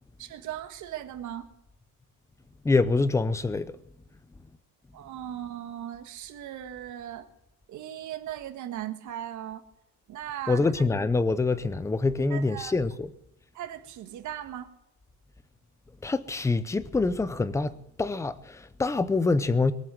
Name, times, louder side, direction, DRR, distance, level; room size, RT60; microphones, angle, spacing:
voice 1, 0.2-1.5 4.9-7.3 7.7-9.6 10.1-10.8 12.3-12.7 13.5-14.7, right 11 dB, 50° right, 1.8 m, -38 dB
voice 2, 2.6-3.7 10.5-13.1 16.0-17.7 18.0-19.7, left 3 dB, 10° left, 0.6 m, -25 dB
22.0 x 7.8 x 7.7 m
cardioid pair, 170°, 37 cm